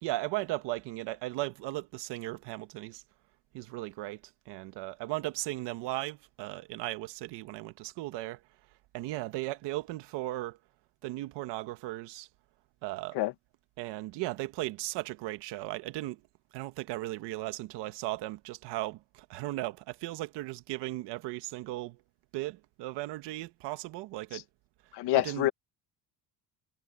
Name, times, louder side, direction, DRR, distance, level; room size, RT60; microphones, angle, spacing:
voice 1, 0.0-3.0 3.5-4.2 4.5-8.4 8.9-10.6 11.0-12.3 12.8-13.2 13.8-16.2 16.5-22.0 22.3-24.4 25.1-25.5, right 18 dB, 80° right, 1.6 m, -36 dB
voice 2, 24.9-25.5, left 15 dB, 75° left, 1.9 m, -26 dB
cardioid pair, 175°, 41 cm